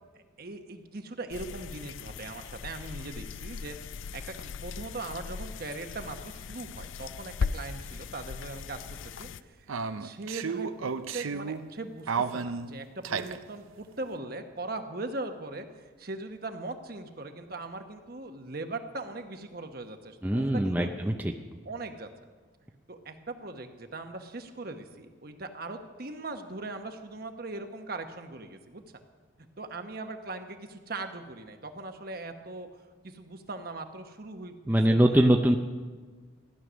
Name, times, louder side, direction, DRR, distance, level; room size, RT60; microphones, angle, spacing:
voice 1, 0.1-3.8 4.1-20.9 21.6-22.1 22.9-28.8 29.6-35.3, right 2 dB, 50° right, 6 dB, 1.1 m, -40 dB
sound 1, 1.3-9.4, left 5 dB, 75° left, 0.4 m, -38 dB
sound 2, 7.8-7.9 8.2-8.3 9.7-11.7 12.1-13.4, right 5 dB, 85° right, 0.6 m, -33 dB
voice 2, 20.2-21.3 34.7-35.6, right 1 dB, 10° right, 3 dB, 0.5 m, -23 dB
15.0 x 11.0 x 6.3 m, 1.4 s
head